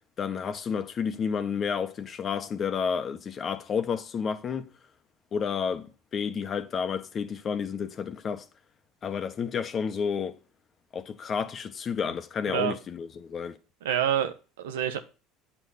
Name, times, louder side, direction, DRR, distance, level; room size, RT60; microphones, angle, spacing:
voice 1, 0.2-4.7 5.3-8.4 9.0-10.4 10.9-13.6, left 6 dB, 40° left, 1.5 m, -31 dB
voice 2, 13.8-15.0, right 10 dB, 85° right, 1.3 m, -27 dB
8.8 x 7.2 x 4.2 m
hypercardioid pair, 80°, 0 cm